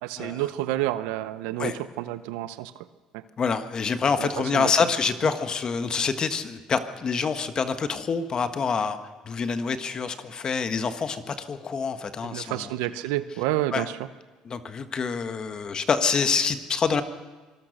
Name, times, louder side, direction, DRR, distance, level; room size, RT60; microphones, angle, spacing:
voice 1, 0.0-2.8 3.1-3.2 4.2-4.7 12.2-14.0, right 14 dB, 90° right, 13 dB, 0.8 m, -29 dB
voice 2, 3.4-9.0 9.2-12.7 13.7-13.9 14.4-17.0, left 5 dB, 40° left, 10 dB, 1.5 m, -26 dB
25.0 x 19.5 x 6.6 m, 1.3 s
supercardioid pair, 95°, 2 cm